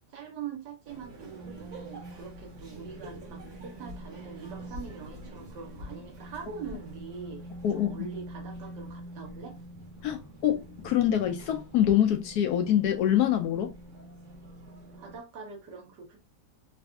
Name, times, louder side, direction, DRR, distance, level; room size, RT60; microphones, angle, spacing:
voice 1, 0.1-7.4 7.7-9.6 14.9-16.2, right 6 dB, 80° right, 1.7 m, -43 dB
sound 1, 0.9-15.2, right 1 dB, 50° right, 1.2 m, -45 dB
voice 2, 10.0-13.7, left 11 dB, 70° left, 1.0 m, -25 dB
4.0 x 2.6 x 2.2 m
omnidirectional pair, 1.9 m